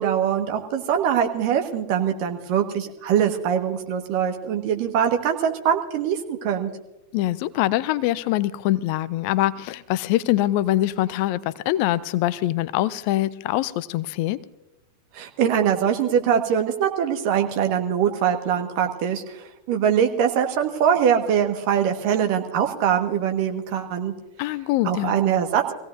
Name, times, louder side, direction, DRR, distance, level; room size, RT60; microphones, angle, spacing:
voice 1, 0.0-6.7 15.1-24.1 24.8-25.7, right 8 dB, 45° right, 5 dB, 1.5 m, -23 dB
voice 2, 7.1-14.4 24.4-25.1, left 15 dB, 45° left, 18 dB, 0.5 m, -23 dB
24.0 x 16.5 x 2.7 m, 0.92 s
figure-of-eight pair, 90°, 0 cm